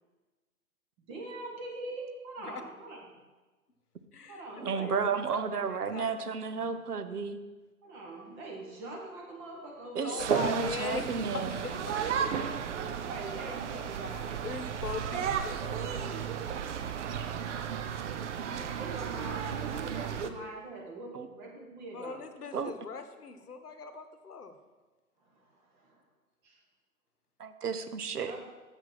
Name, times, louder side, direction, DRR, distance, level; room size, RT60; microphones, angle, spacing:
voice 1, 1.1-3.0 4.3-5.0 7.8-10.2 13.1-14.5 17.3-22.2 25.2-26.0 26.4-26.6 28.2-28.4, right 2 dB, 35° right, -1 dB, 1.3 m, -43 dB
voice 2, 4.1-6.8 10.0-13.0 14.4-16.3 21.9-24.6, left 5 dB, 90° left, 9 dB, 0.9 m, -41 dB
voice 3, 4.6-7.4 9.9-11.6 21.1-21.3 22.5-22.7 27.4-28.3, right 5 dB, 90° right, 10 dB, 0.7 m, -32 dB
sound 1, 10.2-20.3, right 7 dB, 55° right, 0.7 m, -34 dB
6.7 x 4.8 x 5.8 m, 1.2 s
figure-of-eight pair, 125°, 45 cm